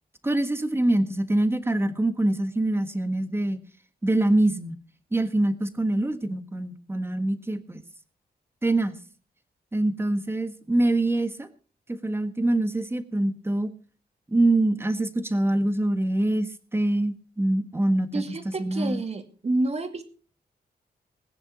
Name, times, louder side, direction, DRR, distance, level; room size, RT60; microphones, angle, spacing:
voice 1, 0.2-3.6 4.0-4.8 5.1-7.8 8.6-9.0 9.7-11.5 11.9-13.7 14.3-19.0, right 1 dB, 15° right, 9 dB, 1.5 m, -24 dB
voice 2, 18.1-20.0, right 2 dB, 40° right, 7 dB, 2.4 m, -29 dB
20.5 x 9.9 x 5.1 m, 0.39 s
wide cardioid pair, 140°, 17 cm